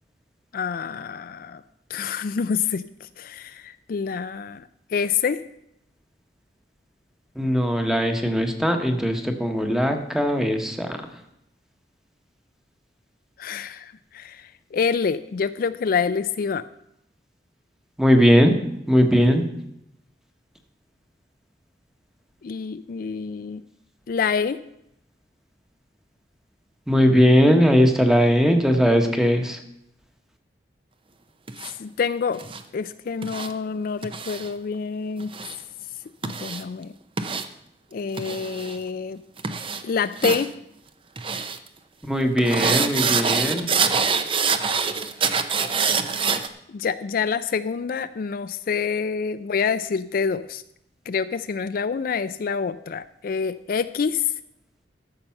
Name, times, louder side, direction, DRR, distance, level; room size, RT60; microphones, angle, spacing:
voice 1, 0.5-1.6 1.9-5.4 13.4-16.6 22.4-23.6 24.1-24.6 31.6-32.4 32.7-35.3 36.2-36.9 37.9-39.2 39.8-40.5 46.7-50.6 51.1-54.3, left 6 dB, 55° left, 12 dB, 0.4 m, -27 dB
voice 2, 7.3-11.0 18.0-18.6 18.9-19.5 26.9-29.6 42.0-43.7, equal, 5° right, 5 dB, 1.1 m, -19 dB
sound 1, 31.5-31.7 32.4-32.6 33.2-33.5 34.0-34.5 35.2-35.5 36.2-36.6 37.2-37.4 38.2-38.8 39.4-39.8 40.2-40.5 41.2-41.6 42.4-46.5, right 5 dB, 30° right, 0.7 m, -25 dB
13.5 x 6.7 x 5.7 m, 0.79 s
head